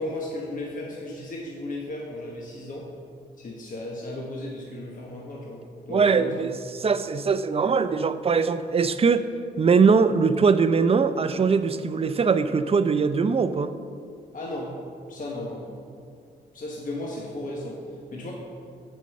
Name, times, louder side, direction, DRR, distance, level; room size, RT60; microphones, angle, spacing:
voice 1, 0.0-2.9 3.4-6.3 14.3-14.8 15.1-15.8 16.5-17.8 18.1-18.3, left 1 dB, 45° left, -2 dB, 1.2 m, -35 dB
voice 2, 5.9-6.5 6.8-9.2 9.6-13.7, right 5 dB, 30° right, 11 dB, 0.5 m, -21 dB
6.8 x 5.3 x 6.7 m, 2.3 s
cardioid pair, 70°, 18 cm